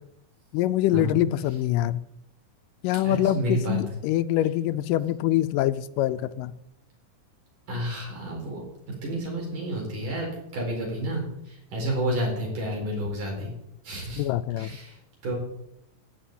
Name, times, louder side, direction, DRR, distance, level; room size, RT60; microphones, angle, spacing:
voice 1, 0.5-2.0 2.8-6.5 14.2-14.8, left 13 dB, 85° left, 13 dB, 2.2 m, -25 dB
voice 2, 3.0-3.8 7.7-8.6 9.0-13.5 13.8-14.2 14.6-14.9 15.2-15.3, right 1 dB, 70° right, -2 dB, 6.0 m, -30 dB
14.5 x 5.5 x 9.1 m, 0.81 s
omnidirectional pair, 3.8 m